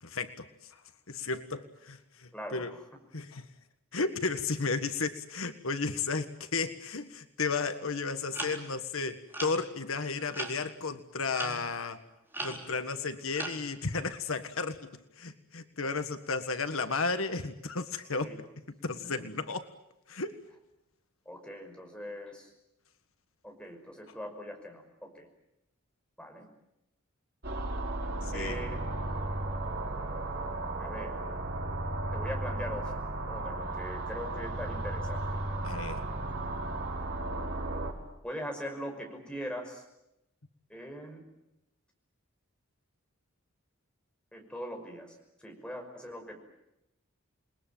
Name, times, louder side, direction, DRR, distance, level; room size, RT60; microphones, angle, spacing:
voice 1, 0.0-0.8 1.1-2.7 3.1-3.5 3.9-12.0 12.4-14.8 15.2-18.3 18.8-19.6 20.1-20.4 28.2-28.6 35.6-36.0, left 4 dB, 75° left, 9 dB, 1.6 m, -33 dB
voice 2, 2.3-2.8 18.1-18.4 19.3-19.4 21.3-22.5 23.4-25.3 26.2-26.5 28.3-28.8 30.8-31.2 32.1-33.0 33.3-35.4 38.2-39.8 40.7-41.2 44.3-46.4, equal, 5° left, 2 dB, 5.8 m, -41 dB
sound 1, 8.3-8.6 9.3-9.6 10.3-10.6 11.3-11.7 12.3-12.8 13.3-13.6, right 2 dB, 10° right, 4.2 m, -37 dB
sound 2, 27.4-37.9, right 2 dB, 50° right, 5.4 m, -35 dB
29.0 x 21.5 x 9.1 m, 0.87 s
head